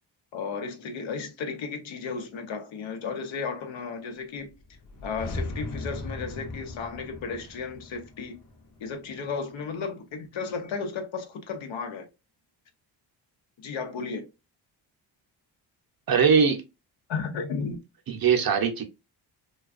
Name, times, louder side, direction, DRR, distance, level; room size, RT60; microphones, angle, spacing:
voice 1, 0.3-4.5 5.0-8.4 8.8-12.1 13.6-14.3 17.1-17.8, left 5 dB, 70° left, 0.8 m, -34 dB
sound 1, 4.5-9.6, left 2 dB, 40° left, 0.9 m, -38 dB
voice 2, 16.1-16.6 18.1-18.8, right 6 dB, 45° right, 0.7 m, -21 dB
2.4 x 2.3 x 2.4 m
supercardioid pair, 50°, 49 cm